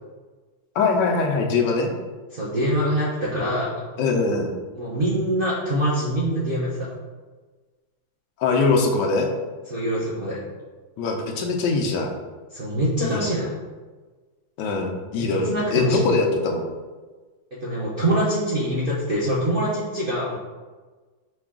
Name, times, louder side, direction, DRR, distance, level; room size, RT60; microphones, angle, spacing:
voice 1, 0.7-1.9 4.0-4.5 8.4-9.3 11.0-12.1 13.0-13.4 14.6-16.6, left 3 dB, 70° left, 2 dB, 1.2 m, -22 dB
voice 2, 2.3-3.8 4.7-6.9 9.7-10.4 12.5-13.5 15.1-16.0 17.5-20.3, right 1 dB, 70° right, -8 dB, 0.5 m, -24 dB
5.6 x 2.3 x 3.6 m, 1.3 s
omnidirectional pair, 2.1 m